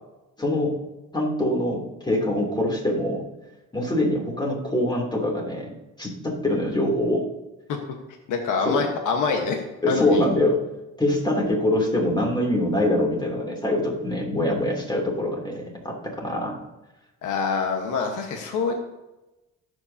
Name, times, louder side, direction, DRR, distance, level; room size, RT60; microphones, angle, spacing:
voice 1, 0.4-0.8 1.1-3.2 3.7-5.7 6.0-7.2 8.6-8.8 9.8-10.6 11.0-16.5, left 1 dB, 15° left, -1 dB, 3.0 m, -24 dB
voice 2, 8.3-9.6 9.9-10.2 17.2-18.7, left 5 dB, 85° left, 3 dB, 1.4 m, -25 dB
19.5 x 7.8 x 2.8 m, 1.0 s
cardioid pair, 90°, 30 cm